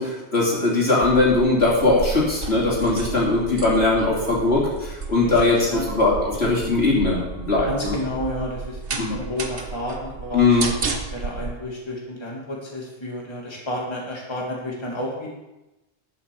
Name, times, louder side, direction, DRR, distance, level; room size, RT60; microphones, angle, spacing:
voice 1, 0.0-8.0 9.0-9.2 10.3-10.7, left 3 dB, 70° left, -5 dB, 3.4 m, -20 dB
sound 1, 1.0-11.5, right 4 dB, 60° right, 1.2 m, -33 dB
voice 2, 5.3-5.8 7.6-10.7 11.1-15.3, left 1 dB, 25° left, -3 dB, 1.9 m, -31 dB
11.0 x 5.6 x 6.8 m, 1.0 s
omnidirectional pair, 1.1 m